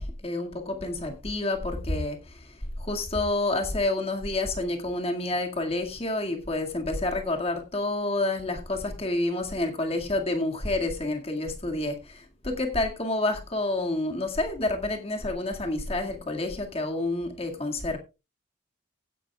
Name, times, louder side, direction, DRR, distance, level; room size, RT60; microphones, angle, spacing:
voice 1, 0.0-18.0, left 2 dB, 30° left, 2.0 m, -29 dB
16.0 x 11.0 x 2.4 m
head